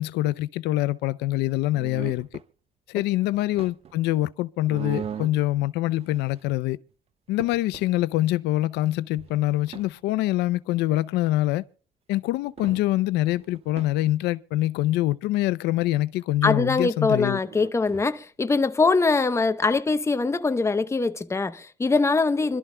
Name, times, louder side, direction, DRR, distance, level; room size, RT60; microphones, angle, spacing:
voice 1, 0.0-2.3 2.9-6.8 7.3-11.6 12.1-17.4, left 16 dB, 85° left, 0.5 m, -25 dB
sound 1, 1.7-2.4 3.2-4.0 4.7-5.4 5.9-6.5 6.9-7.0 7.3-7.9 9.2-9.9 12.1-12.2 12.6-12.9 13.2-14.0 17.4-18.1, right 8 dB, 35° right, 0.6 m, -39 dB
voice 2, 16.4-22.6, left 3 dB, 15° left, 0.8 m, -23 dB
26.0 x 12.5 x 2.2 m
cardioid pair, 110°, 17 cm